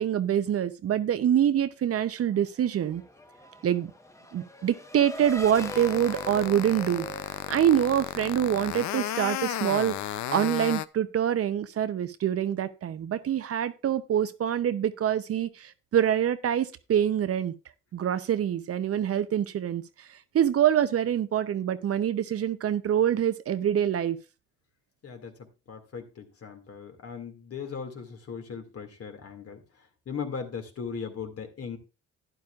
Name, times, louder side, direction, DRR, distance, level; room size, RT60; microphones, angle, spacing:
voice 1, 0.0-3.0 3.6-3.9 4.3-7.1 7.5-17.5 17.9-24.2, right 10 dB, 50° right, 0.7 m, -25 dB
Race car auto racing / Accelerating revving vroom, 2.3-8.4, equal, 10° left, 1.0 m, -43 dB
sound 1, 5.6-10.8, left 13 dB, 70° left, 0.5 m, -33 dB
voice 2, 25.0-25.3 25.7-29.6 30.1-31.8, left 6 dB, 50° left, 2.2 m, -38 dB
11.5 x 10.0 x 2.4 m
cardioid pair, 90°, 30 cm